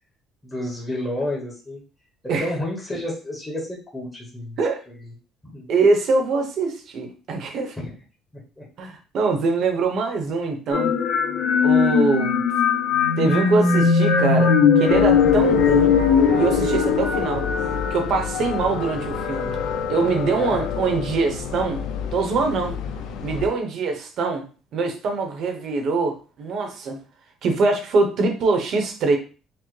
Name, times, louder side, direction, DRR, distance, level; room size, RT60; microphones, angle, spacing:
voice 1, 0.4-1.8 2.4-4.6 4.9-5.1 5.5-5.7 7.8-7.9 8.6-8.7 20.3-20.6, left 1 dB, 10° left, -3 dB, 0.9 m, -30 dB
voice 2, 5.7-7.7 8.8-11.0 11.6-12.4 13.2-16.0 16.3-17.4 17.9-19.6 19.9-21.8 22.1-22.8 23.2-24.5 24.7-27.0 27.4-29.2, right 3 dB, 50° right, 4 dB, 0.9 m, -23 dB
sound 1, 10.7-18.4, left 6 dB, 90° left, 1.1 m, -19 dB
sound 2, 14.9-23.5, left 7 dB, 70° left, 0.5 m, -29 dB
5.9 x 2.0 x 3.2 m, 0.36 s
cardioid pair, 150°, 0 cm